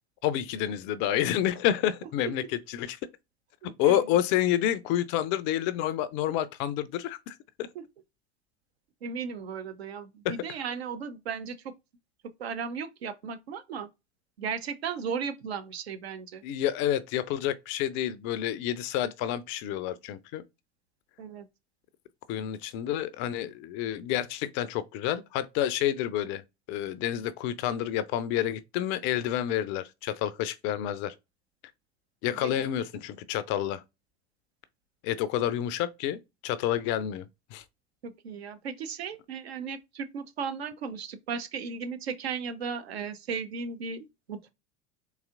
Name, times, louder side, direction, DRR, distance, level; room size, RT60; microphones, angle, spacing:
voice 1, 0.2-2.4 2.7-3.0 3.6-7.7 10.3-10.4 16.4-20.4 22.3-26.4 26.7-31.1 32.2-33.8 35.0-37.3 37.5-37.6, left 11 dB, 35° left, 0.4 m, -29 dB
voice 2, 3.6-4.1 7.7-7.8 9.0-11.7 12.2-13.9 14.4-16.4 21.2-21.5 32.3-32.7 35.4-35.5 38.0-44.5, right 6 dB, 70° right, 0.7 m, -36 dB
4.0 x 2.8 x 2.4 m
figure-of-eight pair, 75°, 33 cm